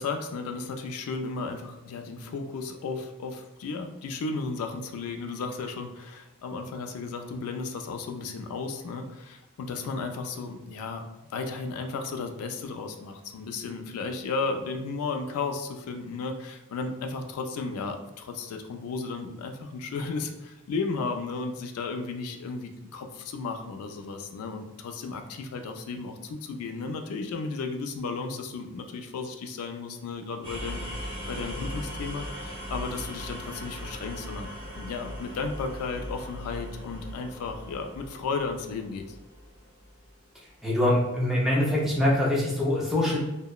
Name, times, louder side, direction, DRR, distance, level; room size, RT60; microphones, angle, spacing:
voice 1, 0.0-11.0 11.3-34.5 34.7-39.2, left 4 dB, 85° left, 8 dB, 0.3 m, -34 dB
sound 1, 30.4-40.2, equal, 20° right, 0.9 m, -39 dB
voice 2, 40.6-43.2, left 1 dB, ahead, -5 dB, 0.4 m, -24 dB
2.8 x 2.0 x 2.3 m, 1.0 s
head